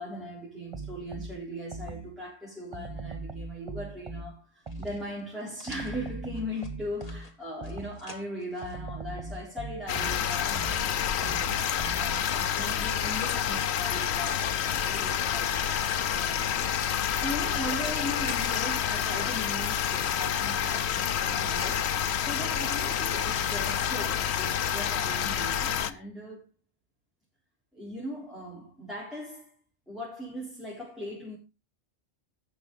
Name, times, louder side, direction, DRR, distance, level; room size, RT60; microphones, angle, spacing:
voice 1, 0.0-11.5 12.0-16.7 17.1-21.9 22.2-26.4 27.7-29.5 29.9-31.4, equal, ahead, 3.9 m, -39 dB
sound 1, 0.7-2.3 2.7-5.2 5.7-8.2 8.6-12.4, right 3 dB, 30° right, 0.9 m, -41 dB
sound 2, 4.6-8.8 9.9-11.0 11.8-13.1 13.8-14.6 14.9-16.5 17.1-18.6 18.9-20.5 21.0-21.8 22.3-24.0, left 3 dB, 35° left, 1.6 m, -49 dB
sound 3, 9.9-25.9, left 9 dB, 70° left, 1.0 m, -28 dB
16.0 x 6.1 x 4.0 m
omnidirectional pair, 1.2 m